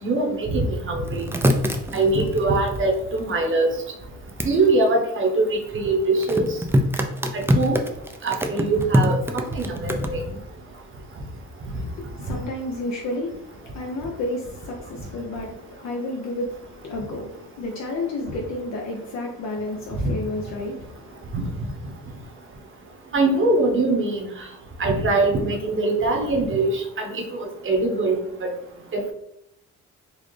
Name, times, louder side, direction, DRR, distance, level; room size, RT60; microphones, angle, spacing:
voice 1, 0.0-1.3 1.9-3.7 4.4-6.5 7.3-7.8 8.2-10.2 20.0-20.1 21.3-21.4 23.1-24.3 24.8-26.8 27.1-28.2, right 2 dB, 40° right, 0.9 m, -22 dB
sound 1, 1.0-3.4 4.3-4.5 6.2-10.1, equal, 10° right, 0.4 m, -23 dB
voice 2, 11.7-21.4, left 2 dB, 65° left, 0.7 m, -31 dB
4.1 x 2.3 x 3.1 m
cardioid pair, 90°, 30 cm